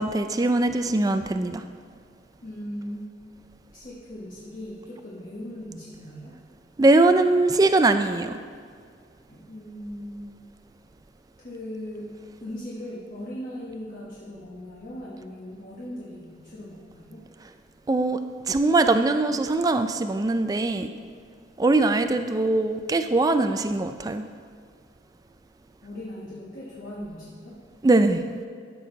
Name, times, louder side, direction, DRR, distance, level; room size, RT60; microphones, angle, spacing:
voice 1, 0.0-1.6 6.8-8.3 17.9-18.2 18.5-20.9 21.6-24.3 27.8-28.2, right 2 dB, 20° right, 9 dB, 0.3 m, -21 dB
voice 2, 2.4-3.1 3.7-6.4 9.3-10.4 11.4-12.1 12.4-17.2 25.8-27.6, equal, 45° left, -7 dB, 1.3 m, -38 dB
13.0 x 6.2 x 3.9 m, 2.1 s
head